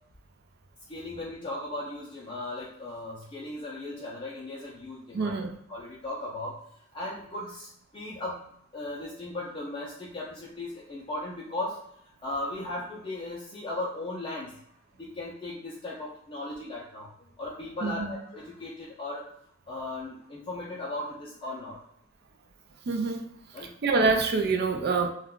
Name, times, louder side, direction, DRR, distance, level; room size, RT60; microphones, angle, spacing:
voice 1, 0.9-5.3 5.7-6.6 6.9-7.7 7.9-8.5 8.7-11.8 12.2-14.5 15.0-17.1 17.4-19.3 19.7-21.8 23.5-23.8, left 2 dB, 25° left, -5 dB, 0.4 m, -37 dB
voice 2, 5.1-5.5 17.8-18.2 22.9-23.2 23.8-25.1, right 4 dB, 55° right, 6 dB, 0.4 m, -25 dB
2.3 x 2.2 x 3.6 m, 0.73 s
head